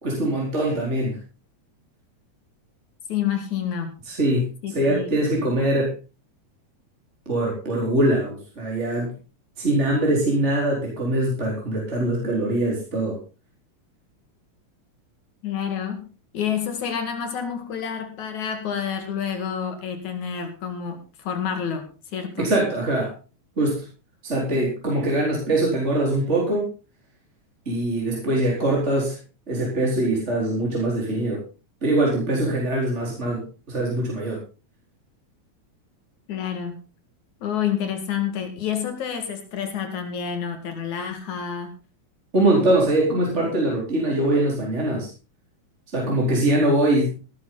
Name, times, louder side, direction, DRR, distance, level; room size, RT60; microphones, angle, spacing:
voice 1, 0.0-1.2 4.1-5.9 7.3-9.1 9.6-13.2 22.4-23.1 23.6-23.8 24.2-26.7 27.7-29.2 29.5-31.4 31.8-33.4 33.7-34.4 42.3-45.1 45.9-47.1, right 1 dB, 20° right, -3 dB, 4.4 m, -22 dB
voice 2, 3.1-4.0 4.6-5.1 15.4-16.1 16.3-22.5 36.3-36.8 37.4-41.7, left 8 dB, 75° left, 6 dB, 3.5 m, -28 dB
17.5 x 11.5 x 4.0 m, 0.33 s
omnidirectional pair, 3.3 m